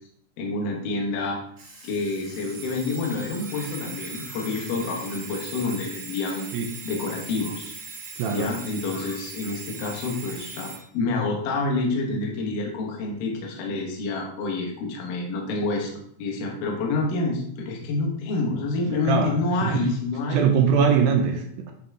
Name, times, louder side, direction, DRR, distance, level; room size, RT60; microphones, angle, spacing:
voice 1, 0.4-1.4 1.8-6.4 6.8-7.7 8.3-15.9 16.2-20.4, left 3 dB, 80° left, -1 dB, 1.4 m, -28 dB
Alarm, 1.6-10.8, right 4 dB, 40° right, 1.6 m, -40 dB
voice 2, 8.2-8.5 18.9-20.0 20.3-21.7, right 6 dB, 80° right, 4 dB, 2.2 m, -22 dB
8.6 x 3.5 x 3.7 m, 0.68 s
omnidirectional pair, 4.7 m